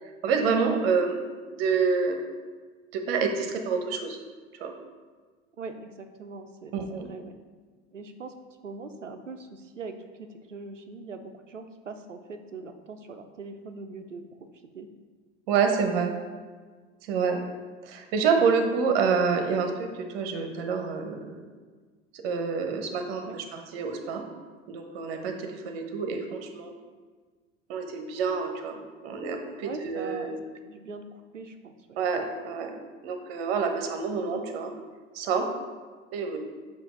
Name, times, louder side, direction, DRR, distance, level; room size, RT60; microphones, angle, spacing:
voice 1, 0.2-1.2 1.6-2.2 2.9-4.2 4.6-4.7 6.7-7.1 15.5-16.1 17.1-17.4 17.9-19.9 20.1-21.4 22.2-24.3 24.7-26.7 27.7-30.4 32.0-32.7 33.0-34.7 35.1-35.5 36.1-36.4, right 5 dB, 55° right, 4 dB, 1.0 m, -27 dB
voice 2, 5.6-7.4 7.9-8.3 8.6-14.5 14.7-14.9 23.3-23.4 29.6-32.0, right 4 dB, 85° right, 7 dB, 0.6 m, -41 dB
7.9 x 2.7 x 5.1 m, 1.5 s
figure-of-eight pair, 80°, 36 cm